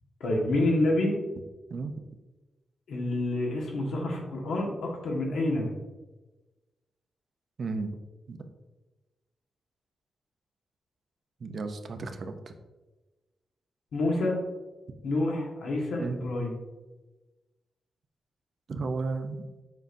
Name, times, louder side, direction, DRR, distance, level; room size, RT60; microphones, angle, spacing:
voice 1, 0.2-1.1 2.9-5.7 13.9-14.3 15.0-16.5, left 2 dB, 75° left, -1 dB, 1.4 m, -28 dB
voice 2, 7.6-7.9 8.3-8.4 11.4-12.5 16.0-16.2 18.7-19.6, right 3 dB, 45° right, 7 dB, 0.5 m, -34 dB
7.4 x 5.2 x 2.6 m, 1.2 s
wide cardioid pair, 170°, 0 cm